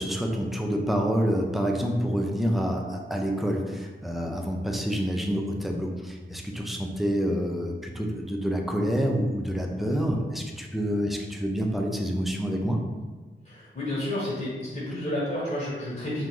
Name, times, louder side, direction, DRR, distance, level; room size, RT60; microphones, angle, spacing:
voice 1, 0.0-12.8, equal, ahead, 1 dB, 0.4 m, -27 dB
voice 2, 13.4-16.3, left 1 dB, 45° left, -7 dB, 1.2 m, -31 dB
3.7 x 2.5 x 3.0 m, 1.3 s
wide cardioid pair, 100°, 19 cm